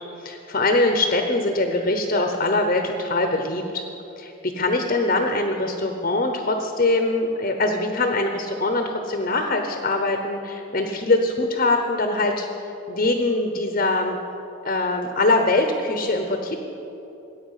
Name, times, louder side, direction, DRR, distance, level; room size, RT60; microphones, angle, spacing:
voice 1, 0.2-3.8 4.2-12.5 12.9-14.2 14.6-16.5, left 2 dB, 40° left, 5 dB, 0.8 m, -23 dB
15.0 x 8.7 x 5.7 m, 2.9 s
head